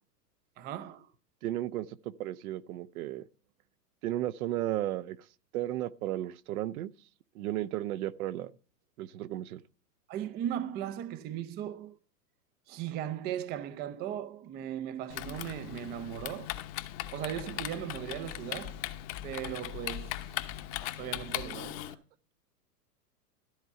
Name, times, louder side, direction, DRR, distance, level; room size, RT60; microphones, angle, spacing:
voice 1, 0.6-1.1 10.1-12.0 12.7-16.5 17.1-18.8 19.2-20.6 20.8-22.0, right 10 dB, 20° right, 0.5 m, -38 dB
voice 2, 1.4-3.2 4.0-5.2 5.5-6.9 7.3-8.5 9.0-9.6, right 14 dB, 60° right, 0.7 m, -34 dB
Typing, 15.1-21.9, left 14 dB, 45° left, 1.0 m, -39 dB
13.5 x 4.6 x 6.8 m
hypercardioid pair, 115°, 48 cm